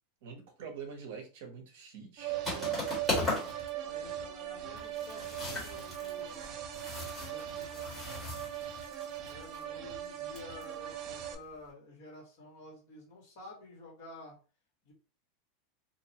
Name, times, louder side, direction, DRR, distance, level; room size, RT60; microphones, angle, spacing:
voice 1, 0.2-2.9, right 6 dB, 55° right, 3 dB, 0.7 m, -46 dB
sound 1, 2.2-11.3, right 11 dB, 30° right, 0.3 m, -39 dB
sound 2, 2.4-3.7 3.9-4.0 4.3-4.4 4.8-9.6 10.4-10.6, left 2 dB, 5° left, 1.2 m, -37 dB
voice 2, 3.7-6.5 6.8-8.1 9.2-14.4 14.8-14.9, left 2 dB, 50° left, -1 dB, 1.3 m, -51 dB
2.6 x 2.1 x 2.8 m, 0.36 s
supercardioid pair, 175°, 0 cm